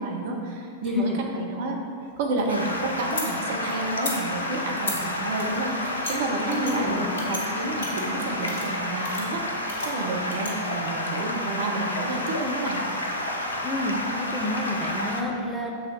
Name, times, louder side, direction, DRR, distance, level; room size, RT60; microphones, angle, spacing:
voice 1, 0.0-1.8 2.2-12.8 14.8-14.9, right 2 dB, 55° right, 1 dB, 0.9 m, -30 dB
sound 1, 2.0-3.3 3.9-4.2 4.8-5.0 5.4-6.1 6.5-6.7 7.2-7.4 7.8-8.8 9.0-9.2 9.7-10.5, left 3 dB, 60° left, 1.2 m, -35 dB
Stream, 2.5-15.2, left 1 dB, 75° left, 0.7 m, -30 dB
voice 2, 6.5-7.3 13.6-15.8, left 1 dB, 10° left, -1 dB, 0.9 m, -30 dB
6.5 x 3.9 x 5.8 m, 2.2 s
figure-of-eight pair, 90°, 0 cm